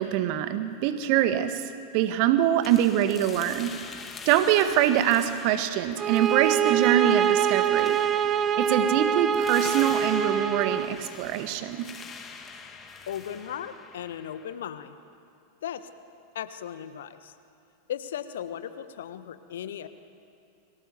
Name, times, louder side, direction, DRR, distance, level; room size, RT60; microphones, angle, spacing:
voice 1, 0.0-3.8 4.2-8.0 8.6-11.9, right 11 dB, 45° right, 9 dB, 1.7 m, -24 dB
sound 1, 2.6-14.6, left 5 dB, 20° left, 2.4 m, -44 dB
sound 2, 6.0-10.9, right 8 dB, 25° right, 0.9 m, -25 dB
voice 2, 13.1-15.0 15.6-15.9 16.3-17.3 17.9-19.9, left 9 dB, 60° left, 11 dB, 1.4 m, -36 dB
30.0 x 24.0 x 7.0 m, 2.5 s
figure-of-eight pair, 90°, 0 cm